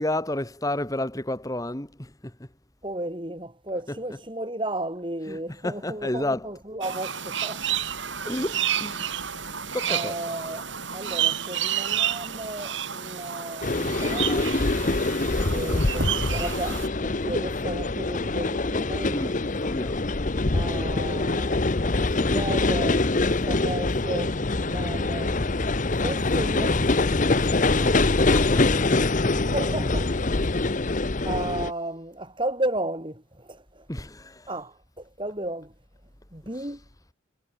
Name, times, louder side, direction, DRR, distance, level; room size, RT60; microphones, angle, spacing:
voice 1, 0.0-2.1 3.9-4.2 5.3-6.5 8.2-9.1 9.7-10.2 19.0-19.4 19.6-20.0 27.4-27.7 28.3-28.9 31.3-31.4 33.9-34.4, left 1 dB, 15° left, 1.6 m, -31 dB
voice 2, 2.8-7.8 9.9-10.6 10.9-14.5 15.5-19.4 20.5-25.4 26.0-27.3 27.6-28.0 29.3-30.1 31.2-33.9 34.5-35.7 36.3-36.8, right 1 dB, 25° right, 6.1 m, -34 dB
sound 1, 6.8-16.9, right 9 dB, 65° right, 5.0 m, -30 dB
sound 2, 13.6-31.7, left 2 dB, 40° left, 0.9 m, -24 dB
head